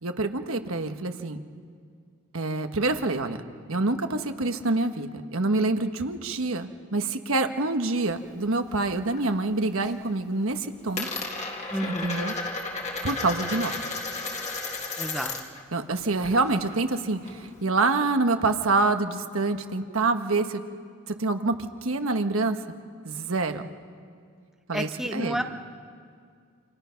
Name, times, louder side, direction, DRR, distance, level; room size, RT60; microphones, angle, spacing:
voice 1, 0.0-1.4 2.3-3.4 3.7-11.1 11.8-12.3 13.0-13.7 15.7-20.6 21.1-22.6 23.0-23.7 24.7-25.4, right 3 dB, 70° right, 6 dB, 1.4 m, -26 dB
Coin (dropping), 8.1-9.3 9.6-10.1 10.3-15.6 15.9-17.6, left 3 dB, 30° left, 1.9 m, -34 dB
voice 2, 11.7-12.1 15.0-15.6 24.7-25.4, equal, ahead, 5 dB, 0.8 m, -31 dB
29.0 x 27.0 x 5.9 m, 2.2 s
head